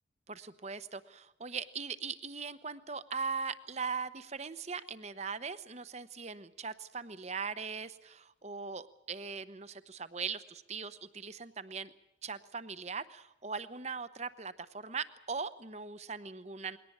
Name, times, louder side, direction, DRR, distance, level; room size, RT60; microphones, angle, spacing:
voice 1, 0.3-11.9 12.2-16.8, right 5 dB, 35° right, 14 dB, 0.9 m, -40 dB
21.5 x 18.0 x 8.8 m, 0.86 s
head